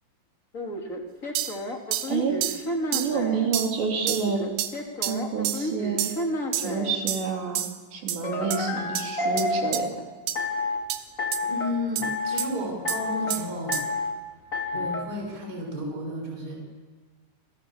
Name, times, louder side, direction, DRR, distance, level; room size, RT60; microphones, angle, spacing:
sound 1, 0.5-3.5 4.0-7.0 8.2-9.9 10.4-10.8 11.2-11.7 12.0-12.5 12.8-13.4 13.7-14.2 14.5-15.0, left 2 dB, 25° left, 2.1 m, -30 dB
sound 2, 1.4-1.6 1.9-2.1 2.4-2.6 2.9-3.1 3.5-3.7 4.1-4.3 4.6-4.7 5.0-5.2 5.5-5.6 6.0-6.2 6.5-6.7 7.1-7.3 7.6-7.8 8.1-8.2 8.5-8.6 9.0-9.1 9.4-9.5 9.7-9.8 10.3-10.4 10.9-11.0 11.3-11.4 12.0-12.1 12.4-12.5 12.9-13.0 13.3-13.4 13.7-13.9, right 11 dB, 80° right, 3.8 m, -28 dB
voice 1, 2.1-2.4 2.9-4.4 5.1-6.1 6.6-7.6 7.9-9.9, right 5 dB, 65° right, 1 dB, 5.4 m, -28 dB
voice 2, 11.4-13.8 14.7-16.6, left 1 dB, 20° right, 1 dB, 7.0 m, -32 dB
28.5 x 28.0 x 7.3 m, 1.4 s
omnidirectional pair, 5.6 m